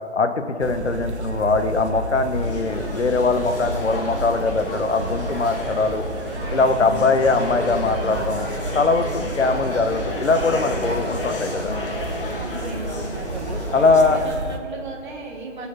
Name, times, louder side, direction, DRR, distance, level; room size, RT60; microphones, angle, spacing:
voice 1, 0.1-6.0 6.5-8.5 8.7-11.7 13.7-14.2, left 3 dB, 70° left, 8 dB, 1.2 m, -21 dB
sound 1, 0.6-14.6, right 2 dB, 65° right, 1.1 m, -31 dB
sound 2, 2.3-14.3, left 2 dB, 45° left, 1.8 m, -32 dB
voice 2, 12.3-13.2 14.1-15.7, right 3 dB, 40° right, -1 dB, 2.3 m, -36 dB
17.5 x 6.5 x 5.7 m, 2.6 s
figure-of-eight pair, 145°, 36 cm